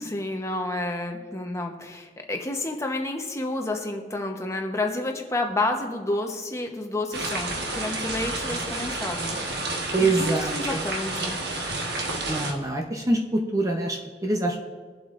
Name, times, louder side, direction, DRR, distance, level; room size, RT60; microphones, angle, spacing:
voice 1, 0.0-9.6 10.0-11.4, left 2 dB, 15° left, 3 dB, 1.0 m, -30 dB
sound 1, 7.1-12.5, right 2 dB, 65° right, 1.4 m, -30 dB
voice 2, 9.9-10.5 12.3-14.6, right 2 dB, 20° right, 1 dB, 0.8 m, -24 dB
22.0 x 7.7 x 2.6 m, 1.5 s
head